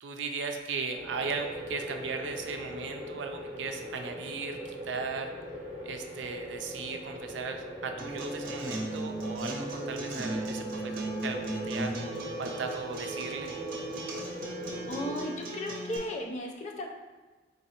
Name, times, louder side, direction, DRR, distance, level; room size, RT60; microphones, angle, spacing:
voice 1, 0.0-5.3 5.8-11.9 12.4-13.6, right 4 dB, 75° right, 5 dB, 0.4 m, -37 dB
sound 1, 0.9-15.2, equal, 30° right, 1.4 m, -40 dB
Acoustic guitar, 8.0-16.0, right 1 dB, 55° right, 0.8 m, -37 dB
voice 2, 14.9-16.9, left 1 dB, 40° left, 2 dB, 0.5 m, -35 dB
3.8 x 3.8 x 2.9 m, 1.2 s
head